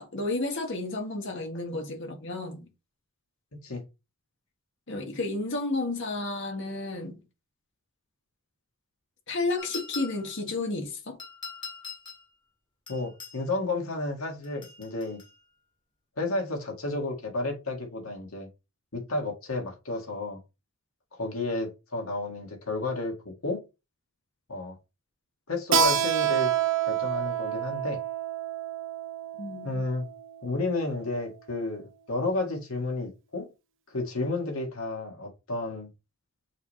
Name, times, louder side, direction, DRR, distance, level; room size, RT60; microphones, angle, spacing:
voice 1, 0.0-2.7 4.9-7.2 9.3-11.2 29.4-29.8, left 2 dB, 60° left, 1.7 m, -32 dB
sound 1, 9.6-10.4 11.2-12.3 12.9-13.4 14.4-15.3, left 5 dB, 25° left, 1.9 m, -42 dB
voice 2, 12.9-15.2 16.2-18.5 18.9-20.4 21.1-23.7 24.5-24.8 25.5-26.5 26.9-28.0 29.6-30.1 30.4-33.5 33.9-35.9, left 2 dB, 75° left, 2.0 m, -32 dB
Keyboard (musical), 25.7-31.0, right 8 dB, 60° right, 0.8 m, -28 dB
6.4 x 3.5 x 4.2 m
head